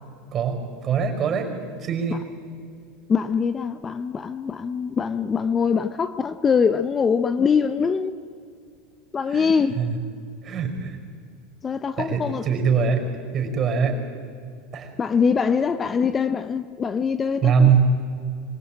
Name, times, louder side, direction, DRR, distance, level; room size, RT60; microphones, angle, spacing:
voice 1, 0.3-1.5 1.8-2.2 9.3-9.5 9.8-10.0 10.4-11.0 12.0-13.0 13.3-14.0 14.7-14.9 17.4-17.9, right 6 dB, 35° right, 5.5 m, -22 dB
voice 2, 3.1-8.2 9.1-9.8 11.6-12.4 15.0-17.7, left 6 dB, 25° left, 0.8 m, -23 dB
25.0 x 17.0 x 9.0 m
supercardioid pair, 125°, 0 cm